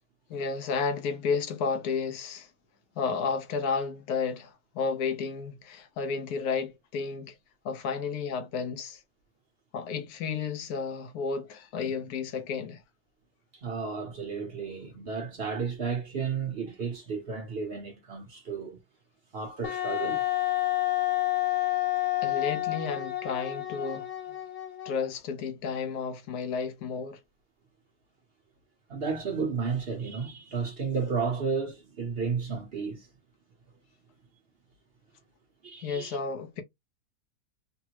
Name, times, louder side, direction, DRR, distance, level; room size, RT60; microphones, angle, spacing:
voice 1, 0.3-2.5 3.0-7.3 7.6-9.0 9.7-12.8 22.2-24.1 24.8-27.2 35.8-36.6, left 5 dB, 85° left, 1.2 m, -32 dB
voice 2, 13.5-18.8 19.3-20.2 28.9-33.1 35.6-36.2, right 5 dB, 50° right, 0.9 m, -32 dB
Wind instrument woodwind instrument, 19.6-25.1, left 15 dB, 60° left, 0.9 m, -29 dB
3.5 x 2.0 x 2.8 m
omnidirectional pair, 1.6 m